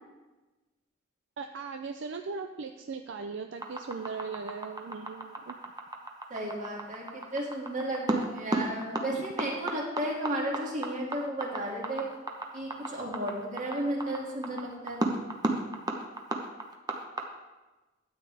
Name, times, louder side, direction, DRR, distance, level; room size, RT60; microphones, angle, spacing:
voice 1, 1.4-5.6 9.1-9.2, right 4 dB, 65° right, 6 dB, 0.5 m, -38 dB
sound 1, 3.6-17.2, right 2 dB, 20° right, 1.0 m, -33 dB
voice 2, 6.3-12.1 12.5-15.2, right 1 dB, 40° right, -2 dB, 2.3 m, -34 dB
13.0 x 8.5 x 3.4 m, 1.1 s
head